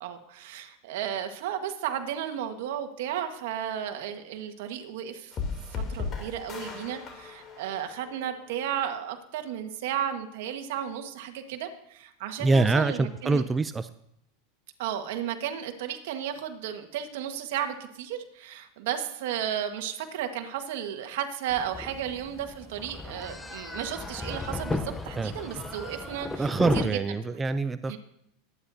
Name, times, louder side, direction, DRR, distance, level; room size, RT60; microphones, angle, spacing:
voice 1, 0.0-5.3 5.9-13.4 14.8-26.9 27.9-28.0, right 9 dB, 70° right, 6 dB, 1.6 m, -34 dB
sound 1, 5.3-8.6, left 5 dB, 30° left, 3.1 m, -36 dB
voice 2, 12.4-13.9 25.2-25.3 26.4-28.0, right 3 dB, 15° right, 11 dB, 0.5 m, -25 dB
sound 2, 21.5-26.8, left 2 dB, 10° left, 0.8 m, -35 dB
22.0 x 9.8 x 2.8 m, 0.75 s
supercardioid pair, 125°, 0 cm